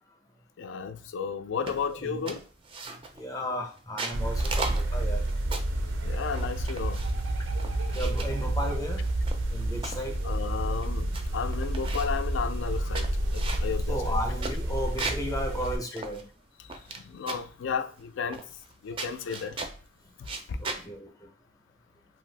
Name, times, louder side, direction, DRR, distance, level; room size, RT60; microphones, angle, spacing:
voice 1, 0.6-2.4 6.0-7.0 10.2-14.2 17.1-18.4 18.8-19.6 20.5-20.6, left 6 dB, 70° left, 0.3 m, -33 dB
voice 2, 1.7-2.3 3.1-5.2 7.9-9.0 9.5-10.2 13.9-16.3 20.6-21.3, equal, 20° left, 0.5 m, -34 dB
sound 1, 1.7-1.9 2.3-3.2 3.8-5.8 6.3-7.2 7.6-8.4 9.0-10.0 10.5-10.6 10.8-11.2 11.5-12.2 12.7-15.3 15.6-15.7 16.0-17.0 17.3-17.6 18.3-18.7 19.0-19.8 20.2-20.8, right 3 dB, 30° right, 0.4 m, -37 dB
sound 2, 4.1-15.8, right 1 dB, 85° right, 0.5 m, -29 dB
2.5 x 2.2 x 3.2 m
head